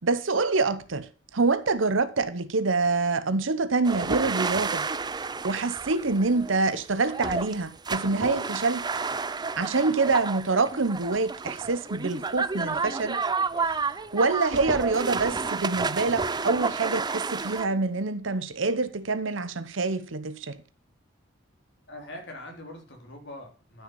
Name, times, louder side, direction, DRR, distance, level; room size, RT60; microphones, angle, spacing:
voice 1, 0.0-1.1 1.3-4.9 5.4-8.8 9.6-13.2 13.6-20.6, right 3 dB, 90° right, 0.9 m, -26 dB
sound 1, 3.8-17.7, right 4 dB, 20° right, 0.5 m, -30 dB
voice 2, 21.9-23.8, left 1 dB, 65° left, 3.5 m, -42 dB
12.5 x 6.4 x 5.4 m
head